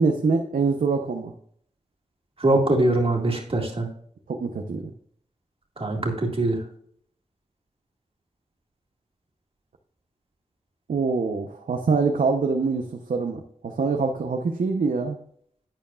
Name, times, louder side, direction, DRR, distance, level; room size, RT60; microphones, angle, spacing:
voice 1, 0.0-1.3 4.3-4.9 10.9-15.2, right 4 dB, 85° right, 4 dB, 0.9 m, -24 dB
voice 2, 2.4-3.9 5.8-6.6, right 2 dB, 45° right, 1 dB, 2.1 m, -22 dB
11.0 x 9.1 x 2.5 m, 0.64 s
wide cardioid pair, 120°, 14 cm